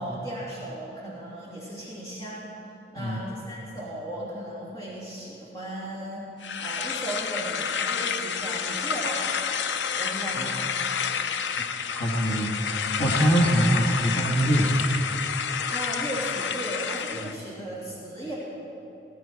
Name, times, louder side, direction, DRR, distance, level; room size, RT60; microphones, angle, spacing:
voice 1, 0.0-2.5 2.9-6.3 6.6-9.2 9.9-10.8 15.7-18.4, right 1 dB, 20° left, -8 dB, 3.0 m, -36 dB
sound 1, 6.4-17.4, left 7 dB, 85° left, 0.6 m, -29 dB
voice 2, 11.9-15.0 17.2-17.4, equal, 65° left, -4 dB, 1.7 m, -24 dB
18.5 x 13.0 x 4.7 m, 2.9 s
head